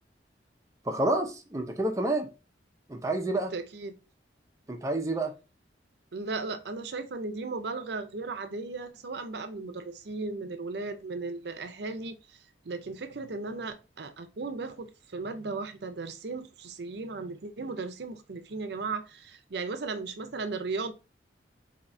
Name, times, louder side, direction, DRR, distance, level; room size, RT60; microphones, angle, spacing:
voice 1, 0.9-2.3 2.9-3.5 4.7-5.4, right 2 dB, 15° right, 0.5 m, -29 dB
voice 2, 3.3-3.9 6.1-20.9, right 3 dB, 65° right, 0.6 m, -36 dB
4.4 x 2.7 x 2.6 m
head